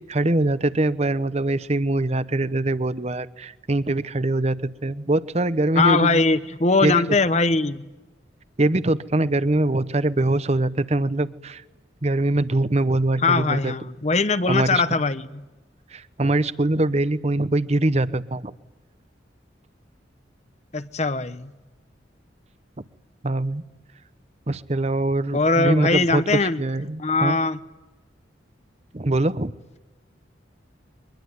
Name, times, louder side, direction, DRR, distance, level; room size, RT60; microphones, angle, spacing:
voice 1, 0.1-6.1 6.8-7.0 8.6-11.6 12.0-13.7 14.5-14.8 15.9-18.5 23.2-23.6 24.5-26.2 26.6-27.4 28.9-29.5, right 2 dB, 35° right, 0.9 m, -23 dB
voice 2, 5.8-7.8 13.2-15.4 20.7-21.5 25.3-26.6 27.0-27.6, left 3 dB, 35° left, 0.9 m, -21 dB
23.0 x 21.0 x 9.6 m
head